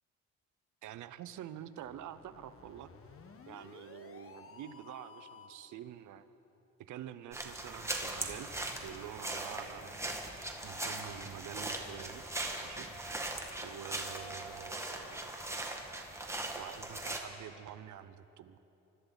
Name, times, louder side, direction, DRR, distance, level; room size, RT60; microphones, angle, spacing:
voice 1, 0.8-2.9 3.5-6.3 6.8-10.0 10.6-12.2 12.6-12.9 13.6-15.5 16.5-18.6, right 10 dB, 75° right, 13 dB, 0.8 m, -47 dB
sound 1, 1.8-5.7, left 5 dB, 45° left, 1.4 m, -55 dB
sound 2, 7.3-17.2, right 1 dB, 10° right, 1.7 m, -40 dB
25.0 x 13.5 x 4.0 m, 3.0 s
cardioid pair, 90°, 30 cm